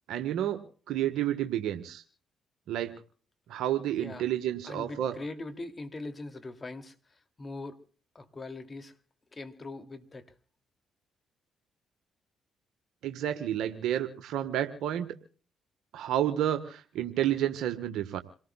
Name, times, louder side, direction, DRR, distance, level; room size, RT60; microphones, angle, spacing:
voice 1, 0.1-2.0 2.7-2.9 3.5-5.2 13.0-15.1 15.9-18.2, right 11 dB, 75° right, 7 dB, 1.2 m, -30 dB
voice 2, 4.6-7.8 8.1-9.0 9.3-10.3, left 2 dB, 35° left, 8 dB, 2.5 m, -41 dB
27.5 x 18.5 x 2.3 m, 0.42 s
supercardioid pair, 55°, 0 cm